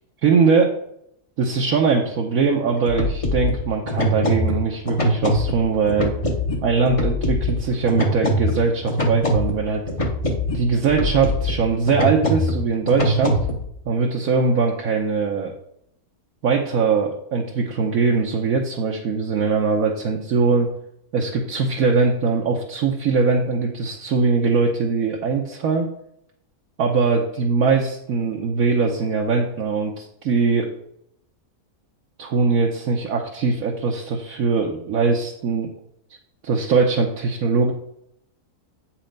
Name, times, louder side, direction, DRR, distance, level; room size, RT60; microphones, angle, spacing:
voice 1, 0.2-0.7 1.4-6.1 6.6-9.8 10.5-13.4 13.9-15.5 16.4-20.7 21.1-25.9 26.8-30.7 32.2-35.7 36.4-37.7, right 4 dB, 70° right, 0 dB, 1.2 m, -21 dB
sound 1, 2.7-13.7, left 1 dB, 25° left, 0.9 m, -24 dB
8.2 x 4.4 x 5.2 m, 0.75 s
omnidirectional pair, 1.6 m